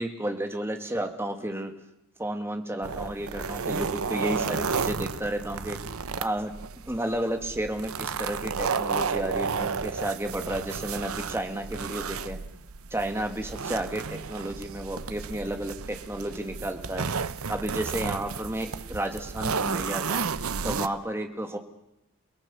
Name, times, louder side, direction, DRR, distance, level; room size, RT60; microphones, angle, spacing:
voice 1, 0.0-1.7 2.2-5.8 6.2-6.5 6.9-12.4 12.9-17.1 17.5-20.2 20.6-21.6, right 1 dB, 10° right, 5 dB, 1.9 m, -32 dB
sound 1, 2.8-20.9, right 5 dB, 80° right, 0.9 m, -32 dB
29.0 x 18.0 x 7.0 m, 0.82 s
head